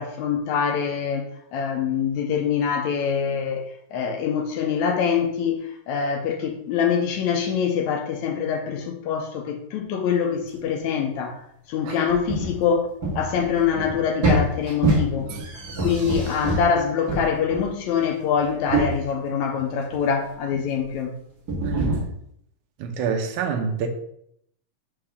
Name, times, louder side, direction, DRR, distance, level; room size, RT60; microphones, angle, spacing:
voice 1, 0.0-11.4 11.7-15.3 15.8-21.1, left 7 dB, 75° left, 1.9 m, -24 dB
sound 1, 12.1-12.6 13.0-16.8 17.1-18.0 18.3-19.0 19.8-20.1 20.5-20.8 21.5-22.0, right 1 dB, 40° right, 1.4 m, -25 dB
voice 2, 21.6-22.1 22.8-23.9, right 6 dB, 80° right, 2.1 m, -27 dB
5.6 x 5.3 x 3.5 m
omnidirectional pair, 3.6 m